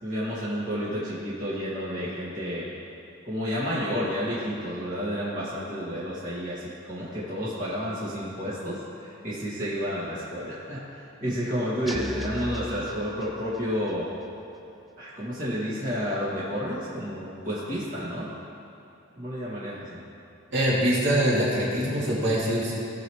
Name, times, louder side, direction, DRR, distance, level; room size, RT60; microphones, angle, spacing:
voice 1, 0.0-2.7 3.2-10.8 11.2-14.1 15.0-18.3 19.2-20.0, equal, 45° right, -9 dB, 2.4 m, -31 dB
sound 1, 11.9-13.8, left 1 dB, ahead, 0.5 m, -37 dB
voice 2, 20.5-22.7, equal, 60° right, -7 dB, 2.6 m, -23 dB
17.0 x 7.0 x 3.2 m, 2.9 s
head